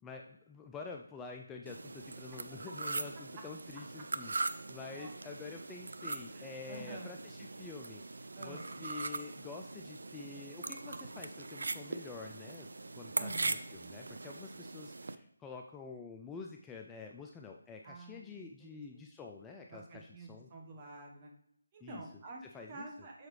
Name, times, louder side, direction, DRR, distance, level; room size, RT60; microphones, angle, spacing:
voice 1, 0.0-12.7 12.9-20.5 21.8-22.0 22.4-22.9, left 4 dB, 10° left, 1 dB, 0.3 m, -48 dB
sound 1, 1.7-15.2, right 3 dB, 70° right, 0.4 m, -41 dB
voice 2, 4.6-5.1 6.3-7.2 8.4-8.7 13.2-13.7 17.8-18.8 19.7-21.3 21.7-23.3, right 2 dB, 25° right, 0 dB, 1.1 m, -49 dB
6.4 x 4.6 x 3.2 m, 0.73 s
figure-of-eight pair, 160°, 0 cm